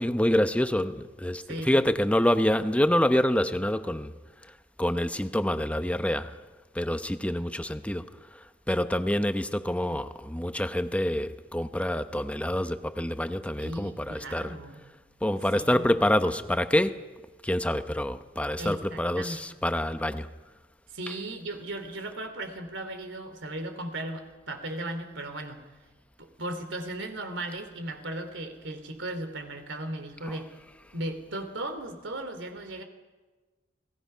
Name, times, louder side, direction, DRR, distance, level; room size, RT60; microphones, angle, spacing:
voice 1, 0.0-4.1 4.4-6.4 6.7-14.6 15.2-17.1 17.4-20.3 30.3-30.4, left 1 dB, 5° left, 0.9 m, -27 dB
voice 2, 1.5-1.8 13.6-14.9 15.5-15.8 18.6-19.5 20.9-25.6 26.2-30.5 30.9-32.8, right 1 dB, 85° right, 3.1 m, -36 dB
30.0 x 20.0 x 5.7 m
head